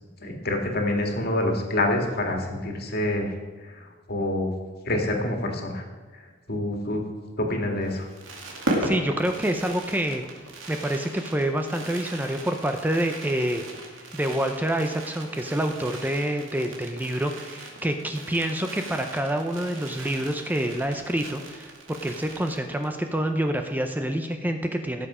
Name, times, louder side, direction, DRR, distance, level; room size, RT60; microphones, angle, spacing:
voice 1, 0.2-3.3 3.6-4.5 4.9-5.8 6.5-7.0 7.4-8.1, left 1 dB, 55° left, 2 dB, 2.0 m, -27 dB
Fireworks, 7.8-23.0 23.3-23.4 23.6-23.9, right 1 dB, 90° right, 2.4 m, -37 dB
voice 2, 8.8-10.2 10.7-13.6 14.1-25.1, right 1 dB, 10° right, 5 dB, 0.6 m, -27 dB
17.0 x 7.1 x 5.0 m, 1.4 s
head